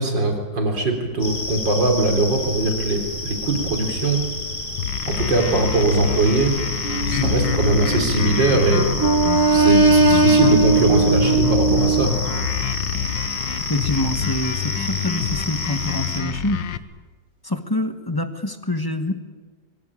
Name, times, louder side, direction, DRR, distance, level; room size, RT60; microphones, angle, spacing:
voice 1, 0.0-4.2 5.1-6.5 7.0-8.9 9.5-12.1, right 2 dB, 80° right, 3 dB, 4.3 m, -21 dB
sound 1, 1.2-16.2, left 2 dB, 35° left, 7.3 m, -30 dB
sound 2, 4.8-16.8, left 9 dB, 80° left, 1.7 m, -27 dB
sound 3, 6.8-8.5 8.9-12.1, right 3 dB, 15° right, 1.0 m, -19 dB
voice 2, 13.7-16.6 17.4-19.1, left 1 dB, 15° left, 8 dB, 1.3 m, -25 dB
24.0 x 23.5 x 8.8 m, 1.4 s
omnidirectional pair, 2.0 m